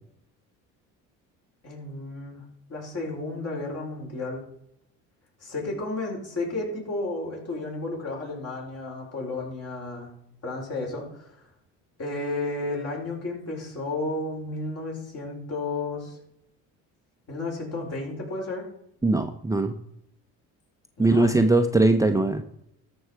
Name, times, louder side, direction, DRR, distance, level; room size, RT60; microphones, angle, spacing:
voice 1, 1.6-2.4 2.7-4.4 5.4-10.1 10.4-11.4 12.0-16.2 17.3-18.6 21.0-21.3, left 2 dB, 45° left, -1 dB, 5.0 m, -32 dB
voice 2, 19.0-19.7 21.0-22.4, right 2 dB, 10° right, 6 dB, 0.7 m, -20 dB
13.5 x 6.2 x 4.7 m, 0.75 s
supercardioid pair, 90°, 33 cm